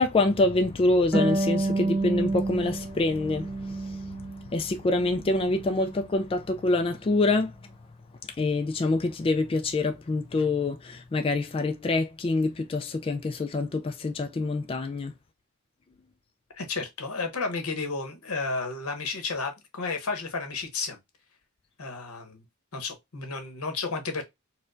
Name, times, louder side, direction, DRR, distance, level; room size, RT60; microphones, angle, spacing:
voice 1, 0.0-4.2 4.5-7.5 8.4-15.1, left 2 dB, 25° left, 0.3 m, -26 dB
Harp, 1.1-4.5 4.9-5.9, right 2 dB, ahead, 1.1 m, -29 dB
voice 2, 16.5-21.0 21.8-22.4 22.7-24.2, left 4 dB, 85° left, 1.0 m, -32 dB
4.3 x 2.2 x 2.5 m
head